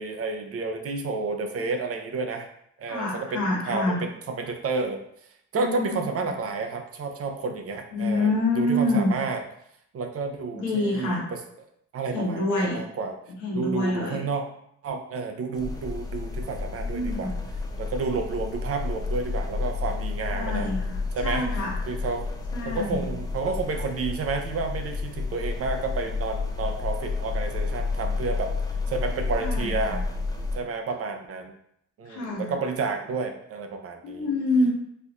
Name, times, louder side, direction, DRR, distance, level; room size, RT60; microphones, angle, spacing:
voice 1, 0.0-2.5 2.8-5.0 5.5-9.4 9.9-11.2 11.9-13.2 13.5-14.4 14.8-17.3 17.8-20.7 21.1-21.5 21.9-22.3 22.7-28.5 28.9-30.0 30.5-31.5 32.0-34.3, right 4 dB, 50° right, 5 dB, 0.6 m, -30 dB
voice 2, 2.9-4.1 5.5-6.0 7.9-9.1 10.5-11.3 12.1-12.8 13.4-14.3 16.8-17.3 20.3-21.8 22.5-23.1 29.4-30.0 32.0-32.6 34.0-34.7, left 2 dB, 75° left, -4 dB, 1.3 m, -27 dB
sound 1, 15.5-30.6, left 4 dB, 15° left, 0.4 m, -31 dB
4.3 x 2.6 x 2.4 m, 0.73 s
cardioid pair, 90°, 30 cm